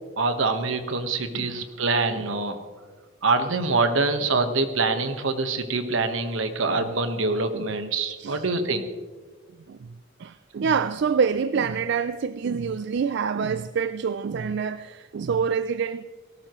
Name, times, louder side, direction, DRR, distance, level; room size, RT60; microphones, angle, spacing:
voice 1, 0.2-2.6 3.2-8.9, right 3 dB, 80° right, 1.3 m, -25 dB
voice 2, 10.2-16.1, right 6 dB, 60° right, 0.4 m, -26 dB
18.5 x 17.0 x 3.1 m
head